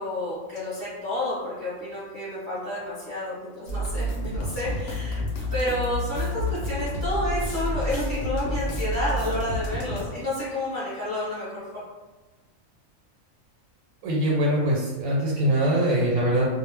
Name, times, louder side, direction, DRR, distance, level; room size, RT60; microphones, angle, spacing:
voice 1, 0.0-5.2 5.5-11.6, left 1 dB, 10° left, -12 dB, 0.7 m, -30 dB
sound 1, 3.7-10.0, equal, 60° left, 0.7 m, -29 dB
voice 2, 14.0-16.5, right 1 dB, 85° right, -3 dB, 1.0 m, -22 dB
2.2 x 2.1 x 3.2 m, 1.2 s
omnidirectional pair, 1.4 m